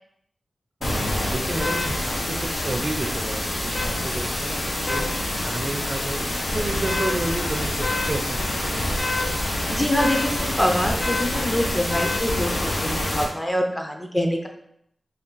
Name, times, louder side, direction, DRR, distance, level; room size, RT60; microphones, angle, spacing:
sound 1, 0.8-13.2, left 1 dB, 75° left, 0.7 m, -26 dB
voice 1, 0.8-5.0 5.5-6.2 6.5-8.9, right 2 dB, 45° right, 4 dB, 0.5 m, -31 dB
voice 2, 9.7-12.5 12.8-14.5, equal, 15° left, 3 dB, 0.6 m, -25 dB
3.3 x 2.4 x 3.9 m, 0.73 s
cardioid pair, 55°, 0 cm